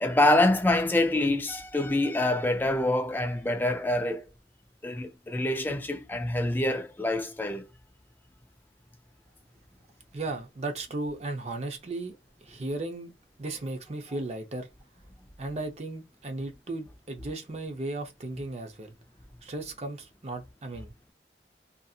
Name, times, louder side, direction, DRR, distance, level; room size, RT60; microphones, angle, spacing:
voice 1, 0.0-4.2 4.8-7.7, left 1 dB, 10° left, 0.3 m, -26 dB
voice 2, 10.1-13.1 13.4-14.7 15.4-18.9 19.4-20.9, right 2 dB, 35° right, 0.6 m, -36 dB
2.6 x 2.6 x 2.3 m
head